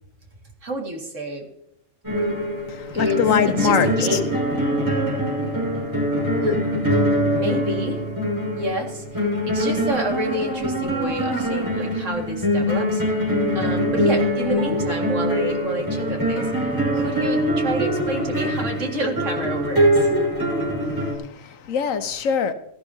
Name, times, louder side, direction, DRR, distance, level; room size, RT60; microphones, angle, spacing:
voice 1, 0.6-1.5 2.9-3.2 3.5-4.3 6.4-8.0 8.6-13.0 13.5-20.1, right 1 dB, 70° right, 1 dB, 2.5 m, -29 dB
sound 1, 2.0-21.1, equal, 15° right, 6.0 m, -23 dB
voice 2, 2.7-4.2 20.8-22.5, left 7 dB, 85° left, 11 dB, 1.3 m, -23 dB
17.0 x 13.5 x 2.8 m, 0.80 s
omnidirectional pair, 1.3 m